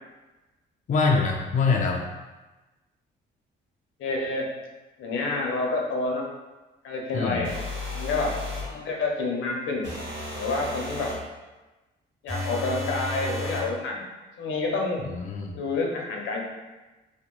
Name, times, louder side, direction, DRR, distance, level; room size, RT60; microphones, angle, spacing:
voice 1, 0.9-2.0 7.1-7.5 15.0-15.6, left 4 dB, 40° left, 0 dB, 0.4 m, -24 dB
voice 2, 4.0-4.5 5.0-6.2 6.8-7.5 7.9-8.3 8.6-9.9 10.3-11.1 12.2-14.0 14.4-15.0 15.5-16.4, left 3 dB, 80° left, 0 dB, 0.7 m, -28 dB
sound 1, 7.4-8.7 9.8-11.2 12.3-13.7, left 2 dB, 65° right, 1.5 m, -33 dB
2.9 x 2.2 x 3.7 m, 1.1 s
cardioid pair, 90°, 20 cm